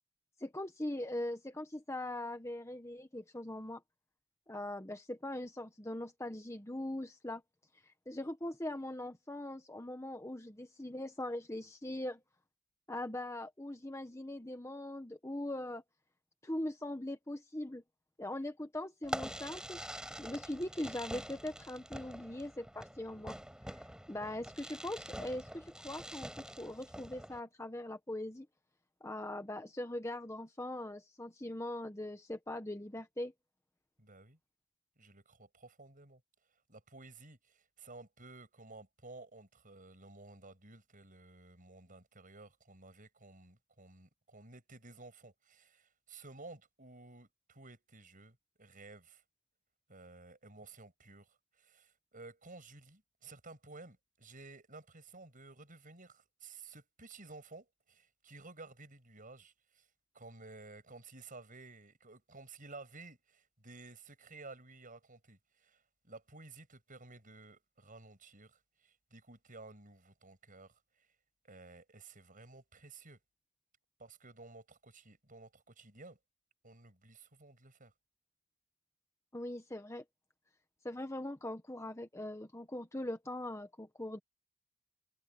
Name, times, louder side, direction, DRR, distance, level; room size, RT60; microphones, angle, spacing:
voice 1, 0.4-3.8 4.5-7.4 7.9-12.2 12.9-15.8 16.4-17.8 18.2-19.8 20.2-23.4 23.7-23.8 24.1-28.5 29.0-33.3 79.3-80.0 80.8-84.2, left 1 dB, 15° left, 1.1 m, -41 dB
Fireworks, 19.0-27.4, equal, 5° right, 5.4 m, -45 dB
voice 2, 34.0-34.4 35.0-36.2 36.7-49.2 49.9-59.9 60.1-70.8 71.5-73.2 74.0-76.2 76.6-77.9, right 3 dB, 35° right, 7.5 m, -54 dB
head